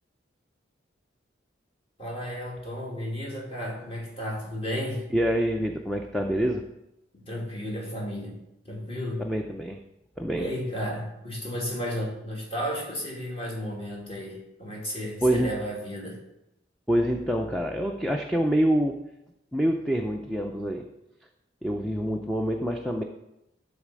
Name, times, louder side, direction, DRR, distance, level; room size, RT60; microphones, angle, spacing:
voice 1, 2.0-5.0 7.1-8.4 8.6-9.3 10.3-16.2, equal, 30° left, -2 dB, 2.5 m, -33 dB
voice 2, 5.1-6.6 9.2-9.8 10.2-10.5 15.2-15.6 16.9-19.0 19.5-20.9 21.6-23.0, equal, ahead, 2 dB, 0.5 m, -26 dB
12.0 x 4.1 x 7.4 m, 0.90 s
head